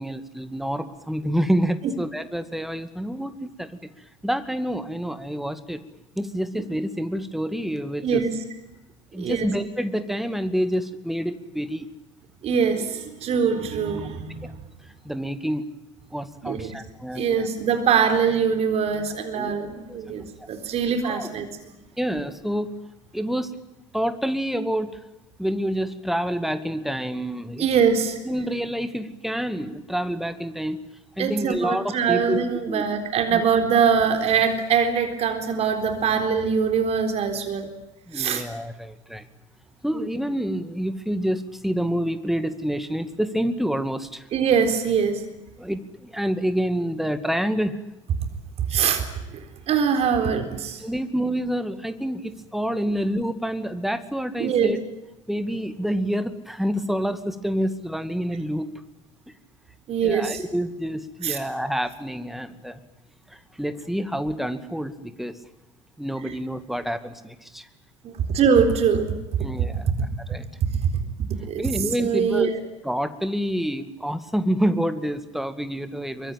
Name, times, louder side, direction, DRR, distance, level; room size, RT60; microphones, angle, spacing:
voice 1, 0.0-3.7 4.2-5.8 6.2-8.2 9.1-11.9 14.4-14.5 15.0-15.7 16.1-17.5 19.3-19.5 20.1-20.2 21.0-21.3 22.0-22.7 23.1-23.5 23.9-25.0 25.4-27.7 28.3-30.8 31.2-32.9 33.3-33.4 38.1-39.3 39.8-44.3 45.6-47.8 50.3-50.4 50.8-54.8 55.3-58.7 60.0-62.8 63.3-65.4 66.0-67.7 69.4-70.5 71.6-72.5 72.8-76.3, equal, ahead, 10 dB, 2.3 m, -28 dB
voice 2, 8.0-8.3 9.2-9.5 12.4-14.6 16.4-16.7 17.2-21.5 27.6-28.2 31.2-37.7 38.1-38.4 44.3-45.2 48.7-49.0 49.3-50.8 54.4-54.7 59.9-60.4 61.2-61.4 68.0-69.1 71.4-71.7 72.0-72.6, right 6 dB, 40° right, 7 dB, 3.9 m, -23 dB
24.0 x 24.0 x 9.0 m, 0.98 s
figure-of-eight pair, 70°, 16 cm